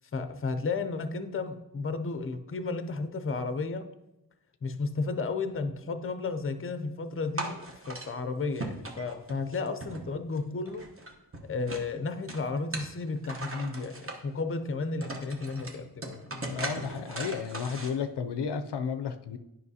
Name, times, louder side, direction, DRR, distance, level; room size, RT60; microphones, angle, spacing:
voice 1, 0.1-3.9 4.6-10.9 11.5-16.2, left 4 dB, 35° left, 9 dB, 0.5 m, -33 dB
sound 1, 7.4-8.1 8.5-10.4 10.6-11.9 12.3-14.2 14.7-14.8 15.0-17.9, right 2 dB, 30° right, 1.0 m, -38 dB
voice 2, 16.3-19.4, left 6 dB, 80° left, 9 dB, 0.5 m, -33 dB
9.7 x 5.5 x 2.7 m, 0.91 s
wide cardioid pair, 80°, 41 cm